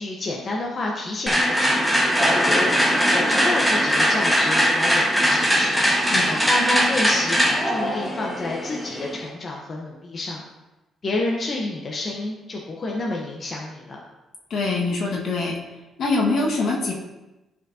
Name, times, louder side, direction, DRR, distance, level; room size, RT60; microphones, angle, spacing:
voice 1, 0.0-1.8 2.3-2.7 3.1-5.8 6.5-10.4 11.0-14.0, left 2 dB, 40° left, -2 dB, 1.1 m, -29 dB
sound 1, 1.3-9.2, equal, 5° left, 1.4 m, -20 dB
voice 2, 6.1-6.4 14.5-15.6 16.0-16.9, left 3 dB, 65° left, -2 dB, 1.6 m, -24 dB
11.5 x 5.0 x 2.8 m, 1.0 s
cardioid pair, 90°, 0 cm